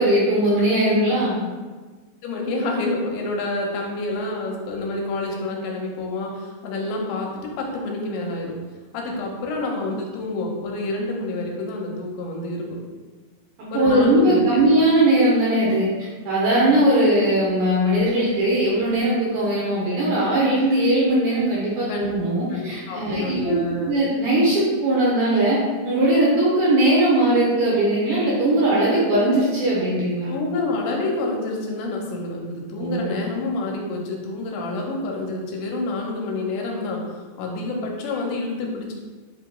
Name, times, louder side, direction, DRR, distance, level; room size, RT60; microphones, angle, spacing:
voice 1, 0.0-1.4 13.6-23.5 23.9-25.6 25.8-30.4 32.8-33.1, right 1 dB, 75° right, -6 dB, 2.3 m, -19 dB
voice 2, 2.2-7.3 7.6-8.5 8.9-12.9 13.7-14.5 21.9-22.0 22.5-24.0 30.3-38.9, left 2 dB, 85° left, -1 dB, 2.8 m, -28 dB
7.9 x 2.8 x 2.2 m, 1.3 s
omnidirectional pair, 5.0 m